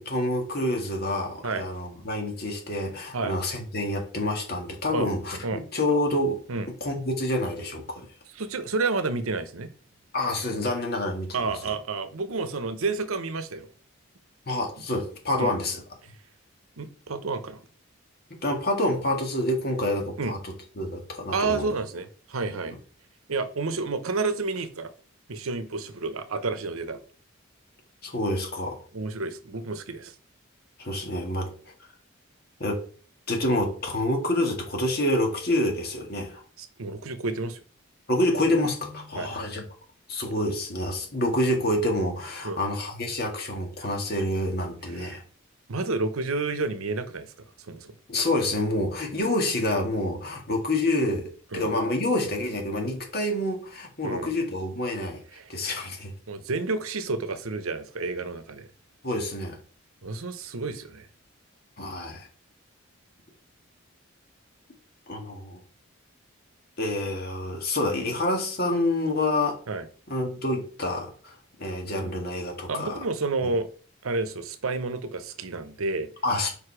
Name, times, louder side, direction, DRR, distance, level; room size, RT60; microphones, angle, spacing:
voice 1, 0.0-6.4 6.8-8.1 10.1-11.6 14.5-15.8 18.4-21.7 28.0-28.8 30.8-31.6 32.6-32.8 33.3-36.4 38.1-39.7 40.1-45.2 48.1-55.2 55.5-56.1 59.0-59.6 61.8-62.3 65.1-65.6 66.8-69.6 70.1-73.0 73.4-73.5 76.2-76.5, left 1 dB, 45° left, 1.8 m, -27 dB
voice 2, 8.4-9.7 11.3-13.7 15.4-15.5 16.8-17.6 20.2-20.3 21.3-22.8 23.3-24.9 25.3-27.0 28.9-30.1 36.6-37.6 39.1-39.3 42.4-42.6 43.8-43.9 44.9-45.2 45.7-47.3 47.7-47.9 51.5-51.7 54.0-54.3 55.3-55.5 56.3-58.7 60.0-61.1 69.7-69.9 72.0-72.1 72.7-73.7 74.0-76.1, right 3 dB, 80° right, 0.8 m, -30 dB
5.2 x 4.9 x 4.8 m
head